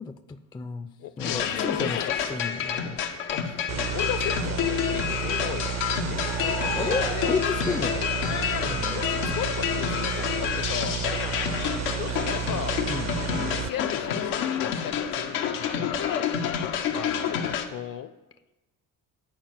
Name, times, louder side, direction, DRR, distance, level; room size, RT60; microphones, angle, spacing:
voice 1, 0.0-0.9 1.2-2.0 2.3-3.0 6.7-8.1 8.7-9.0 12.9-13.1, left 4 dB, 10° left, 9 dB, 0.3 m, -32 dB
voice 2, 1.0-2.9 3.3-5.8 6.0-7.3 8.6-11.4 11.9-12.8 13.3-16.2 16.9-18.1, left 11 dB, 50° left, 13 dB, 0.6 m, -36 dB
sound 1, 1.2-17.7, left 8 dB, 90° left, 0.7 m, -29 dB
sound 2, 3.7-13.7, right 9 dB, 40° right, 0.5 m, -32 dB
sound 3, 5.4-9.0, right 8 dB, 75° right, 0.8 m, -40 dB
9.1 x 4.3 x 5.9 m, 1.1 s
supercardioid pair, 60°, 43 cm